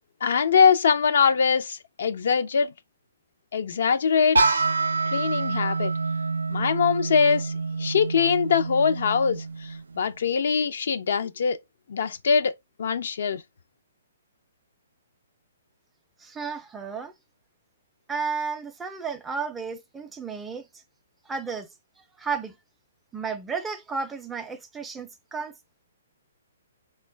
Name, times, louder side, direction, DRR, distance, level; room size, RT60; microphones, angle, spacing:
voice 1, 0.2-2.7 3.5-4.7 5.1-5.9 6.5-7.5 7.8-11.6 11.9-12.5 12.8-13.4, left 6 dB, 65° left, 0.4 m, -23 dB
sound 1, 4.4-10.2, right 3 dB, 85° right, 0.3 m, -27 dB
voice 2, 16.2-17.1 18.1-20.7 21.3-21.7 22.2-22.5 23.1-25.5, right 5 dB, 10° right, 0.4 m, -32 dB
3.6 x 2.2 x 3.2 m
hypercardioid pair, 135°, 0 cm